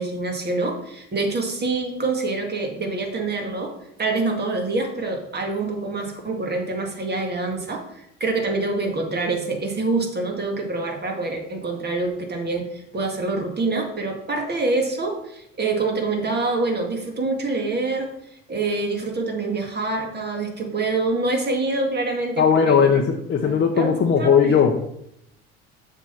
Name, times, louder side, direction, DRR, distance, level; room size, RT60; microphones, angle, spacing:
voice 1, 0.0-18.1 18.5-23.0 23.4-24.6, right 3 dB, 30° right, 2 dB, 2.1 m, -26 dB
voice 2, 22.4-24.8, left 6 dB, 35° left, 1 dB, 0.9 m, -18 dB
7.1 x 3.9 x 5.8 m, 0.76 s
hypercardioid pair, 70°, 33 cm